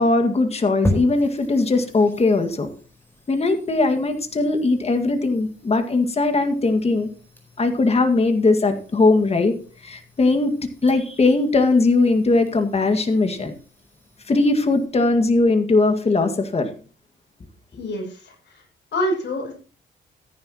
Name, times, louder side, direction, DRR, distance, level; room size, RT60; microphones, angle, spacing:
voice 1, 0.0-2.7 3.3-7.1 7.6-9.6 9.8-10.5 10.8-13.5 14.3-16.7, left 3 dB, 30° left, 6 dB, 1.9 m, -19 dB
sound 1, 0.8-14.8, left 1 dB, 10° left, 4.6 m, -37 dB
voice 2, 17.7-18.6 18.9-19.5, equal, 60° left, 0 dB, 6.7 m, -27 dB
14.5 x 10.0 x 3.0 m, 0.38 s
cardioid pair, 90°, 20 cm